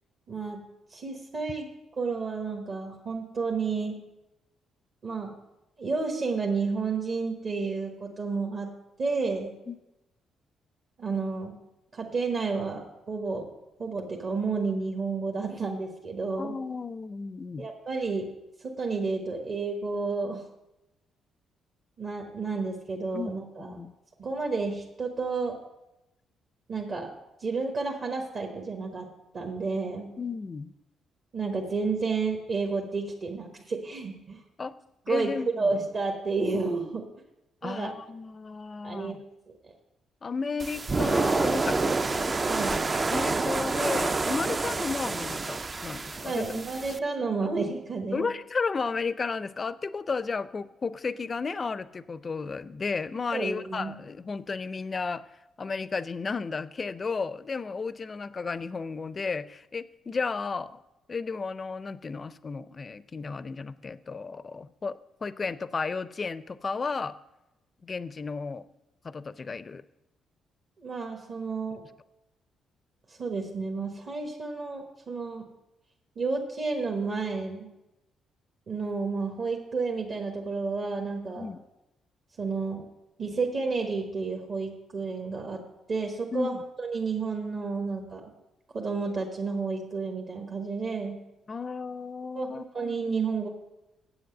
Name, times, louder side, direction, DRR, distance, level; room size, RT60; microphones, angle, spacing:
voice 1, 0.3-0.6 0.9-1.7 2.0-4.0 5.0-5.3 5.8-8.7 9.0-9.5 11.0-11.6 11.9-13.5 13.8-16.6 17.6-18.3 18.6-20.4 22.0-23.8 24.2-25.6 26.7-27.1 27.4-29.1 29.3-30.1 31.3-34.4 35.1-37.1 37.6-37.9 38.8-39.2 42.4-42.8 46.2-48.3 53.3-53.9 70.8-71.8 73.2-75.4 76.2-77.7 78.7-81.5 82.4-82.8 83.2-85.6 85.9-88.3 88.7-91.2 92.3-93.5, right 4 dB, 50° right, 0 dB, 1.3 m, -31 dB
voice 2, 16.4-17.7 23.1-23.3 23.6-23.9 30.2-30.7 34.6-34.7 35.1-35.7 37.6-39.2 40.2-41.9 43.1-46.5 48.1-55.2 55.6-60.8 61.1-67.2 67.8-68.7 69.0-69.8 81.4-81.6 86.3-86.6 91.5-92.9, left 4 dB, 35° left, 16 dB, 0.4 m, -33 dB
sound 1, 40.6-47.0, right 3 dB, 30° right, 0.4 m, -28 dB
7.9 x 7.6 x 6.5 m, 0.94 s
cardioid pair, 90°, 0 cm